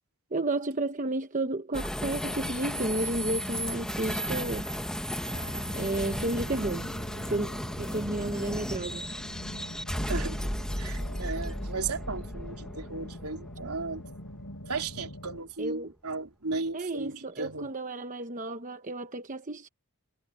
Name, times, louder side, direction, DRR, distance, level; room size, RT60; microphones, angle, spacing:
voice 1, 0.3-4.7 5.7-6.9 7.3-7.5 7.8-9.1 15.6-15.9 16.7-19.7, right 2 dB, 35° right, 1.0 m, -32 dB
sound 1, 1.7-15.1, equal, 5° left, 1.2 m, -34 dB
sound 2, 5.3-15.4, left 1 dB, 75° left, 4.8 m, -44 dB
voice 2, 10.1-10.4 10.8-14.0 14.7-17.7, right 4 dB, 80° right, 3.3 m, -35 dB
head